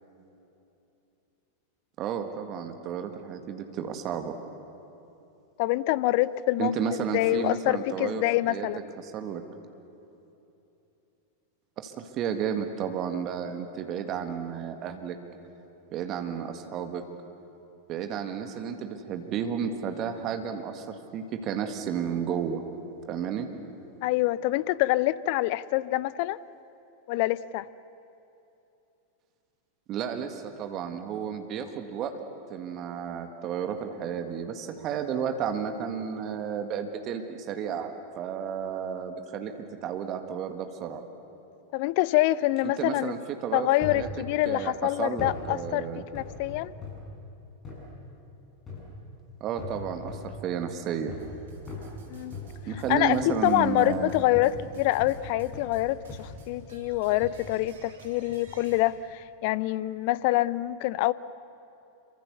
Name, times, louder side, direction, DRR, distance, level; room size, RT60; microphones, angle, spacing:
voice 1, 2.0-4.4 6.6-8.7 9.0-9.4 11.8-15.2 15.9-17.1 17.9-22.6 23.1-23.5 29.9-32.2 32.5-41.0 42.6-44.1 44.5-46.0 49.4-51.1 52.7-54.1, right 7 dB, 35° right, 7 dB, 1.9 m, -32 dB
voice 2, 5.6-8.8 24.0-26.4 27.1-27.7 41.7-43.1 43.5-45.9 46.1-46.7 52.1-52.3 52.9-61.1, left 16 dB, 45° left, 19 dB, 0.6 m, -26 dB
sound 1, 43.8-44.1 45.2-45.5 46.1-47.1 47.6-47.9 48.7-49.0 49.6-50.4 51.1-51.4 51.7-55.2 55.5-55.8 56.1-56.5 57.2-57.4 58.3-58.6 59.2-59.3, left 4 dB, 25° left, 7.6 m, -40 dB
sound 2, 51.2-58.8, right 2 dB, 65° right, 3.5 m, -50 dB
27.0 x 24.0 x 7.0 m, 2.9 s
figure-of-eight pair, 90°, 0 cm